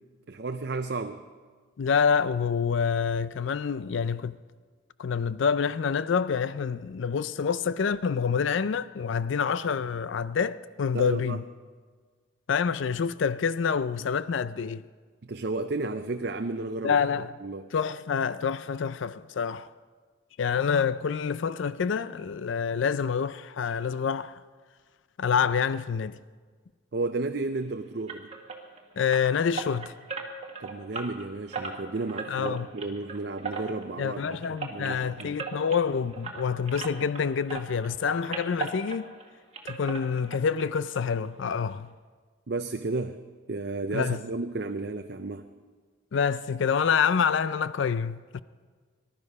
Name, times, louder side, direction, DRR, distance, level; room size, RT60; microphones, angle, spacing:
voice 1, 0.3-1.2 10.9-11.4 15.2-17.0 17.4-17.7 26.9-28.3 30.6-34.4 34.7-35.4 42.5-43.2 43.5-45.5, right 3 dB, 55° right, 0.5 m, -32 dB
voice 2, 1.8-4.4 5.0-11.4 12.5-14.9 16.8-17.3 17.7-19.7 20.4-24.4 25.2-26.2 29.0-29.9 32.3-32.7 34.0-39.1 39.6-41.9 43.9-44.2 46.1-48.4, left 6 dB, 70° left, 0.4 m, -27 dB
sound 1, 28.1-37.2 37.5-39.3 39.5-40.7 40.9-41.0 41.5-41.6 41.9-42.0, right 4 dB, 30° right, 1.6 m, -38 dB
20.0 x 12.0 x 5.4 m
head